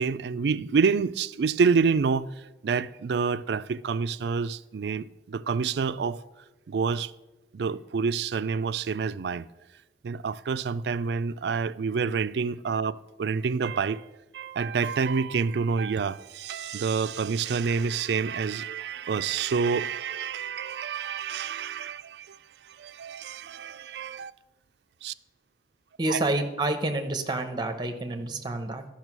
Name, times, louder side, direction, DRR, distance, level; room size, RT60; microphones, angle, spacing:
voice 1, 0.0-6.2 6.7-7.1 7.5-9.5 10.0-22.4 22.6-24.3 25.0-25.1 26.1-26.2, right 5 dB, 70° right, 0.4 m, -28 dB
voice 2, 26.0-28.8, right 2 dB, 25° right, 0.9 m, -28 dB
12.5 x 5.9 x 6.1 m
head